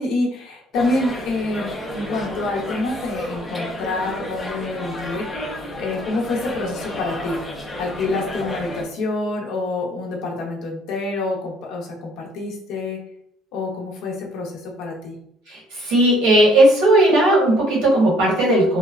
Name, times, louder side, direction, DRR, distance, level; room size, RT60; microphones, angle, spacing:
voice 1, 0.0-5.4 5.8-7.4 7.8-13.0 13.5-15.2, left 2 dB, 60° left, 0 dB, 0.6 m, -27 dB
sound 1, 0.7-8.8, left 1 dB, 10° left, 0.4 m, -31 dB
voice 2, 15.5-18.8, right 1 dB, 80° right, -4 dB, 1.2 m, -16 dB
3.0 x 2.1 x 2.3 m, 0.70 s
cardioid pair, 165°, 0 cm